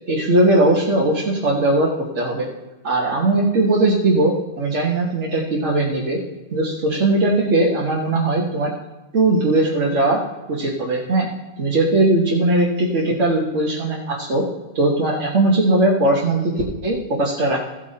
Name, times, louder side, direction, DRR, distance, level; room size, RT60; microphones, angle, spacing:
voice 1, 0.1-2.5 2.8-6.2 6.5-8.7 9.1-10.2 10.5-11.3 11.6-14.4 14.7-16.5 16.8-17.6, right 2 dB, 90° right, -4 dB, 1.6 m, -19 dB
15.0 x 8.1 x 2.8 m, 1.1 s
omnidirectional pair, 1.2 m